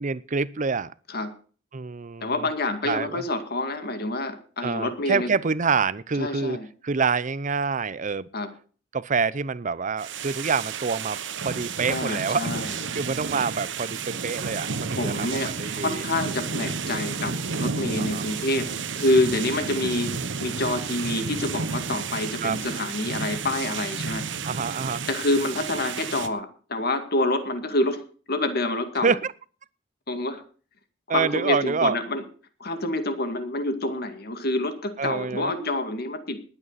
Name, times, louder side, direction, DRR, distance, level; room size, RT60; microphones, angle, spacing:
voice 1, 0.0-0.9 1.7-2.5 2.8-3.2 4.6-6.6 6.8-8.3 8.9-12.6 12.9-16.0 18.1-18.3 22.4-22.6 24.5-25.1 29.0-29.3 31.1-32.0 35.0-35.7, right 5 dB, 40° right, 0.6 m, -27 dB
voice 2, 2.2-5.3 6.2-6.7 8.3-8.5 11.9-12.8 15.0-20.1 20.4-24.3 25.1-29.2 30.1-30.4 31.1-32.2 32.6-36.4, left 2 dB, 50° left, 2.2 m, -27 dB
sound 1, 10.0-26.3, right 5 dB, 65° right, 1.2 m, -31 dB
20.0 x 9.2 x 4.1 m
head